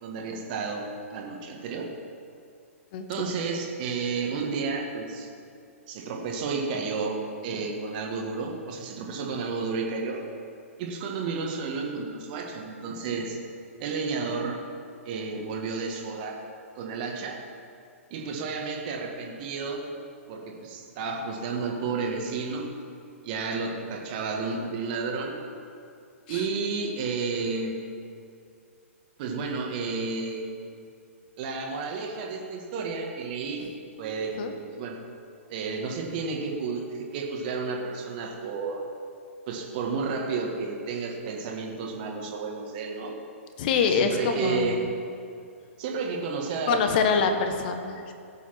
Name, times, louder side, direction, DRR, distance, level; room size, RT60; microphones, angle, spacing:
voice 1, 0.0-1.9 3.1-5.3 5.9-10.2 10.8-13.4 13.8-14.6 15.1-16.4 16.8-17.4 18.1-19.8 20.3-22.7 23.2-25.4 26.3-27.8 29.2-30.5 31.4-33.7 34.0-35.0 35.5-38.9 39.5-43.2 43.7-44.8 45.8-47.3, right 4 dB, 40° right, 1 dB, 1.8 m, -31 dB
voice 2, 43.6-44.9 46.7-48.1, left 5 dB, 40° left, 6 dB, 1.5 m, -25 dB
16.0 x 8.4 x 6.0 m, 2.5 s
figure-of-eight pair, 120°, 8 cm